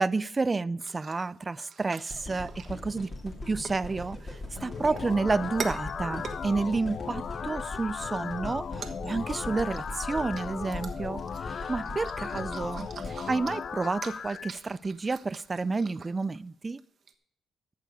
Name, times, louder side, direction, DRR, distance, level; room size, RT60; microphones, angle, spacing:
voice 1, 0.0-16.8, right 3 dB, 25° right, 0.3 m, -30 dB
sound 1, 0.8-3.3 3.6-3.8 4.2-7.6 8.1-8.3 8.6-16.4 16.7-16.8 17.1-17.2, right 6 dB, 50° right, 1.2 m, -45 dB
sound 2, 2.1-14.3 14.9-15.0, left 2 dB, 30° left, 2.6 m, -41 dB
sound 3, 4.5-14.5, left 7 dB, 50° left, 0.3 m, -37 dB
14.0 x 6.7 x 5.1 m
cardioid pair, 90°, 0 cm